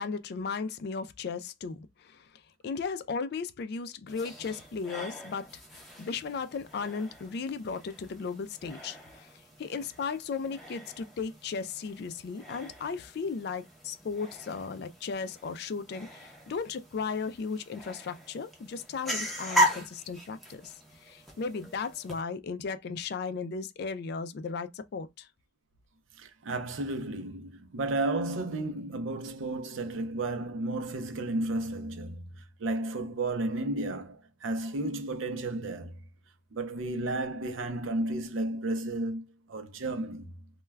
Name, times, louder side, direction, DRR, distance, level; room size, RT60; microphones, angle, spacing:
voice 1, 0.0-9.3 9.6-20.7 21.0-25.3, left 5 dB, 55° left, 0.3 m, -36 dB
sound 1, 4.1-22.2, equal, ahead, 0.6 m, -38 dB
voice 2, 26.2-36.0 36.5-40.3, right 2 dB, 80° right, 0.5 m, -33 dB
2.2 x 2.2 x 3.2 m
head